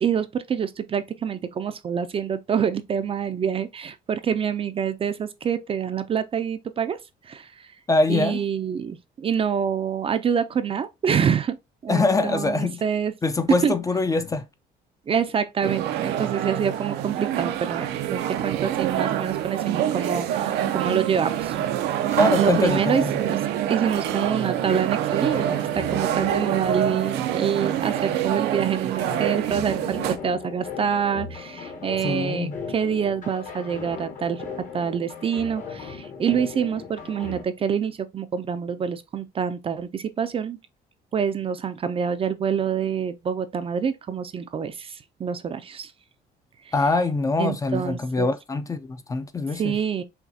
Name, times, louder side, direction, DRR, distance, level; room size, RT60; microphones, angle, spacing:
voice 1, 0.0-7.0 7.2-7.7 8.1-11.6 11.8-13.1 13.6-13.7 15.1-21.6 22.4-23.4 23.7-34.5 34.7-40.6 41.1-45.9 46.7-46.8 47.4-48.3 49.5-50.0, right 7 dB, 35° right, 0.4 m, -26 dB
voice 2, 7.9-8.4 11.9-12.8 13.2-14.4 22.1-23.1 32.0-32.6 46.7-49.8, left 3 dB, 20° left, 0.4 m, -23 dB
sound 1, 15.6-30.2, right 11 dB, 85° right, 0.5 m, -26 dB
sound 2, 22.4-37.4, left 5 dB, 50° left, 1.2 m, -39 dB
5.7 x 2.3 x 2.7 m
cardioid pair, 110°, 17 cm